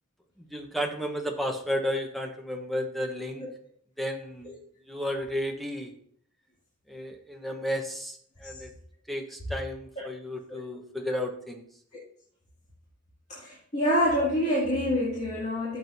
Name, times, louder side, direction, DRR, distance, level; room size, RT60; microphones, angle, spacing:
voice 1, 0.5-3.4 4.0-4.5 4.9-5.9 6.9-8.7 9.1-11.6, equal, ahead, 2 dB, 1.1 m, -32 dB
voice 2, 13.3-15.8, equal, 35° left, -8 dB, 2.4 m, -26 dB
12.0 x 7.6 x 2.7 m, 0.63 s
head